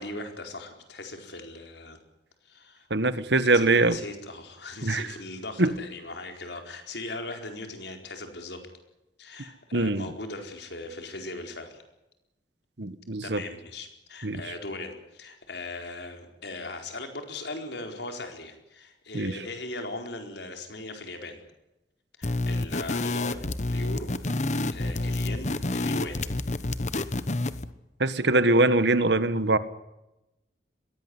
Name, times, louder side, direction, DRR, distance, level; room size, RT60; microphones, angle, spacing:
voice 1, 0.0-2.0 2.4-2.9 3.5-8.6 9.2-11.8 13.2-21.4 22.2-24.1 24.7-26.3, left 2 dB, 70° left, 5 dB, 4.4 m, -39 dB
voice 2, 2.9-4.0 4.8-5.1 5.6-5.7 9.7-10.1 12.8-13.4 14.2-14.4 19.1-19.4 28.0-29.6, right 2 dB, 65° right, 13 dB, 1.4 m, -23 dB
sound 1, 22.2-27.7, left 2 dB, 40° left, 1.0 m, -29 dB
22.0 x 17.0 x 9.7 m, 0.93 s
head